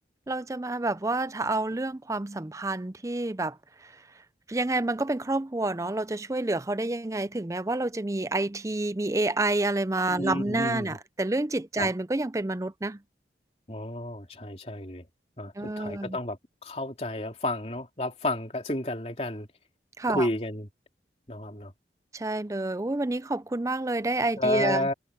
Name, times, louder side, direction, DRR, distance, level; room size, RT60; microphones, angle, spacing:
voice 1, 0.3-3.6 3.8-3.9 4.5-13.0 15.6-16.2 20.0-20.3 22.1-24.9, right 2 dB, 20° right, 0.5 m, -28 dB
voice 2, 10.1-10.9 11.8-11.9 13.7-15.1 15.4-19.5 20.1-20.7 21.3-21.7 24.4-24.9, left 1 dB, 35° left, 3.2 m, -31 dB
head